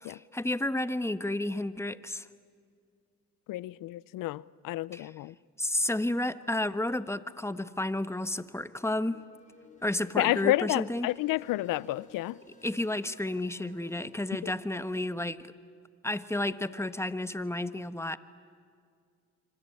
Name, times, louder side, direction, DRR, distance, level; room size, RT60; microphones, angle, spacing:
voice 1, 0.0-2.3 4.9-5.1 5.6-9.2 9.8-11.1 12.5-15.5 16.0-18.2, left 1 dB, 10° left, 1.2 m, -31 dB
voice 2, 3.5-5.3 10.2-12.4 14.4-14.5, left 17 dB, 85° left, 0.6 m, -30 dB
sound 1, 8.5-14.5, left 2 dB, 25° left, 6.2 m, -57 dB
26.0 x 25.5 x 8.7 m
supercardioid pair, 60°, 32 cm